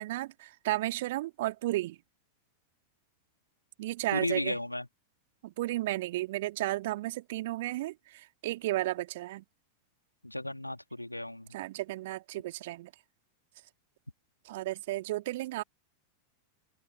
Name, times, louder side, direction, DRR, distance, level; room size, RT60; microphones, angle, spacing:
voice 1, 0.0-2.0 3.8-4.5 5.4-9.4 11.5-12.9 14.5-15.6, right 17 dB, 55° right, 2.5 m, -33 dB
voice 2, 4.1-4.9 10.2-11.6, left 1 dB, 85° left, 3.4 m, -34 dB
figure-of-eight pair, 90°, 0 cm